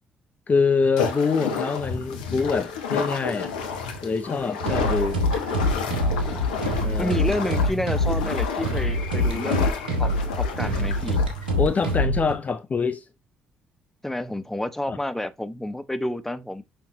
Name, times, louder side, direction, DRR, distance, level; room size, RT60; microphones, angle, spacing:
voice 1, 0.5-3.5 4.0-5.2 6.8-7.1 11.6-13.0 14.9-15.0, left 5 dB, 30° left, 0.8 m, -25 dB
sound 1, 1.0-12.0, left 5 dB, 75° left, 1.2 m, -31 dB
sound 2, 4.6-12.3, left 1 dB, 80° right, 1.5 m, -25 dB
voice 2, 6.0-6.5 7.0-10.1 10.3-11.2 14.0-16.6, left 1 dB, 5° left, 1.1 m, -30 dB
6.7 x 5.7 x 2.9 m
figure-of-eight pair, 45°, 5 cm